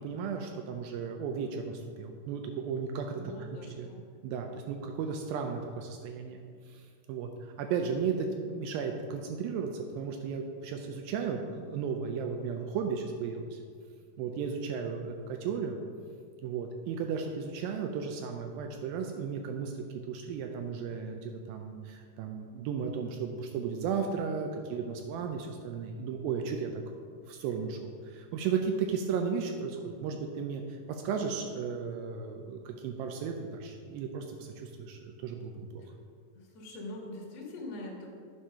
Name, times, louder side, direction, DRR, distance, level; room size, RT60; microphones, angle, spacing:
voice 1, 0.0-3.5 3.8-3.9 4.2-6.4 6.7-13.6 14.2-15.8 16.4-26.8 27.3-35.8, right 6 dB, 90° right, 3 dB, 2.0 m, -35 dB
voice 2, 3.1-4.0 35.8-35.9 36.3-38.1, left 2 dB, 60° left, -3 dB, 1.8 m, -43 dB
9.7 x 4.5 x 5.6 m, 2.1 s
omnidirectional pair, 4.8 m